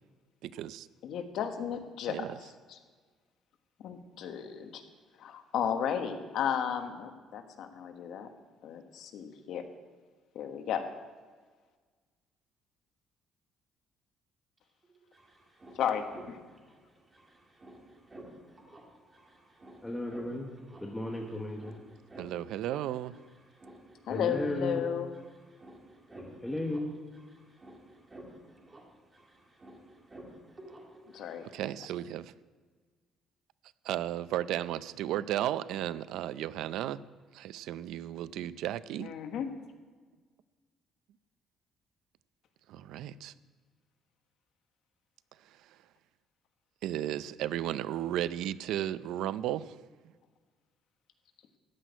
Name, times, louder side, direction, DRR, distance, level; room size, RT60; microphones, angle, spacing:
voice 1, 0.4-0.9 2.1-2.3 22.2-23.2 31.5-32.3 33.8-37.0 37.3-39.1 42.7-43.3 46.8-49.7, right 12 dB, 75° right, 16 dB, 0.4 m, -34 dB
voice 2, 1.0-2.8 3.8-4.8 5.2-8.3 8.6-9.6 10.3-10.8 15.7-16.4 24.0-25.1 31.1-31.4 39.0-39.5, left 8 dB, 70° left, 6 dB, 1.3 m, -34 dB
sound 1, 14.6-14.7 14.8-31.6, right 1 dB, 20° right, 2.2 m, -53 dB
voice 3, 19.8-20.5 20.8-21.7 24.1-24.8 26.2-26.9, left 1 dB, 5° left, -1 dB, 1.2 m, -35 dB
14.0 x 6.3 x 9.3 m, 1.5 s
cardioid pair, 135°, 0 cm